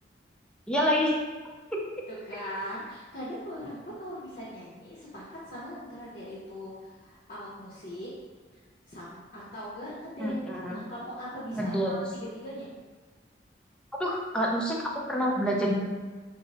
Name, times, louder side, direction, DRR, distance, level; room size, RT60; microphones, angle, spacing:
voice 1, 0.7-1.1 10.2-10.8 11.6-12.0 14.0-15.9, equal, 5° left, -3 dB, 0.4 m, -27 dB
voice 2, 2.1-8.1 8.9-10.4 10.7-12.7, equal, 45° left, -8 dB, 0.8 m, -40 dB
3.7 x 2.0 x 4.0 m, 1.4 s
head